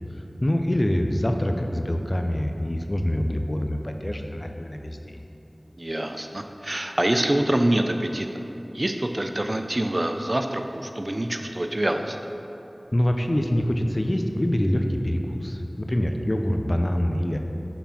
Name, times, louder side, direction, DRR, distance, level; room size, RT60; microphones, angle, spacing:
voice 1, 0.4-5.2 12.9-17.4, equal, 40° left, 4 dB, 0.5 m, -25 dB
voice 2, 5.8-8.4 8.7-12.2, right 1 dB, 45° right, 5 dB, 0.4 m, -25 dB
5.8 x 4.3 x 5.6 m, 3.0 s
wide cardioid pair, 45°, 0 cm